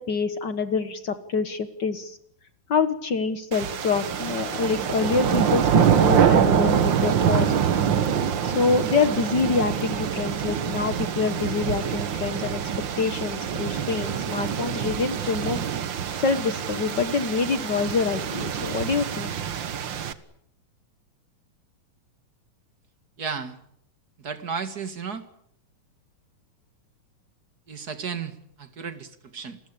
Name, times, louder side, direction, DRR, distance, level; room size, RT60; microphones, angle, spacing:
voice 1, 0.0-2.2 2.7-7.5 8.4-12.6 13.0-15.7 16.2-19.3, left 4 dB, 60° left, 11 dB, 1.1 m, -26 dB
sound 1, 3.5-20.1, right 8 dB, 75° right, 1.0 m, -25 dB
voice 2, 23.2-23.6 24.2-25.2 27.7-29.6, right 6 dB, 35° right, 10 dB, 1.9 m, -33 dB
29.5 x 20.5 x 8.6 m, 0.72 s
omnidirectional pair, 4.1 m